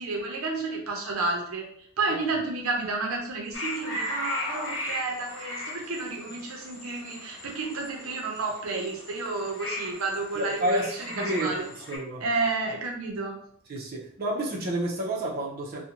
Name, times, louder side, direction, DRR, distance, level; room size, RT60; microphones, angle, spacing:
voice 1, 0.0-1.7 2.0-11.7 12.2-13.4, right 3 dB, 90° right, 0 dB, 0.6 m, -31 dB
sound 1, 3.5-12.0, left 1 dB, 60° left, 0.8 m, -37 dB
voice 2, 10.3-12.2 13.7-15.8, right 1 dB, 45° right, -3 dB, 0.5 m, -30 dB
2.5 x 2.1 x 2.8 m, 0.63 s
head